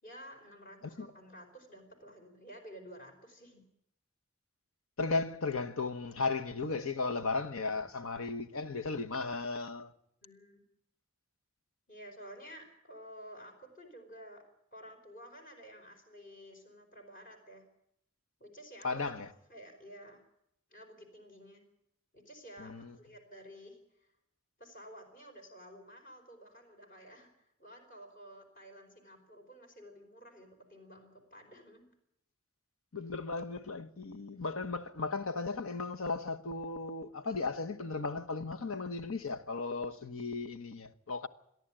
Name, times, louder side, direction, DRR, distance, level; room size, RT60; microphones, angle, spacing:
voice 1, 0.0-3.6 7.6-7.9 10.2-10.6 11.9-14.4 14.7-17.6 18.4-19.2 19.5-20.2 20.7-21.6 22.1-24.1 24.6-31.9, equal, 40° left, 4.7 m, -52 dB
voice 2, 5.0-9.9 18.8-19.3 22.6-22.9 32.9-41.3, left 3 dB, 75° left, 1.2 m, -35 dB
28.5 x 11.0 x 8.9 m
head